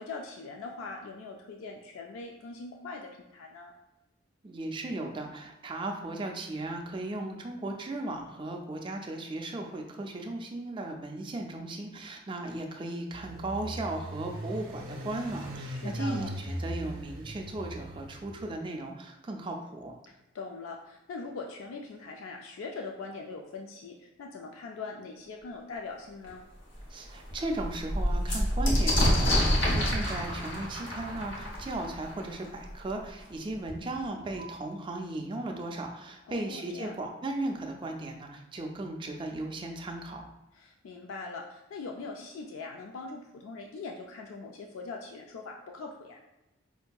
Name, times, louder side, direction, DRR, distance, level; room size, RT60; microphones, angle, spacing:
voice 1, 0.0-3.7 15.7-16.3 20.1-26.4 36.3-36.9 40.5-46.2, left 4 dB, 80° left, 2 dB, 0.3 m, -42 dB
voice 2, 4.4-19.9 26.9-40.3, right 2 dB, 25° right, 2 dB, 0.3 m, -36 dB
sound 1, 13.1-18.6, right 1 dB, 80° right, 0.5 m, -39 dB
sound 2, 26.2-26.3 26.8-26.9 27.2-32.7 33.7-33.8 34.0-34.6, equal, 65° left, 0.9 m, -28 dB
4.6 x 2.5 x 2.3 m, 1.0 s
head